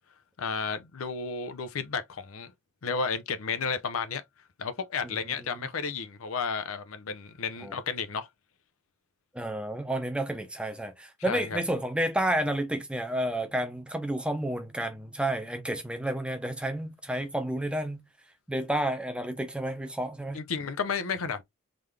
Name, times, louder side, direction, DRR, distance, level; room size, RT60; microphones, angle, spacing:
voice 1, 0.4-2.5 2.8-4.2 4.6-8.3 11.3-11.6 20.3-21.4, left 5 dB, 85° left, 0.6 m, -32 dB
voice 2, 5.0-5.7 7.6-7.8 9.3-18.0 18.5-20.4, right 1 dB, 5° right, 0.7 m, -31 dB
3.8 x 3.3 x 3.3 m
head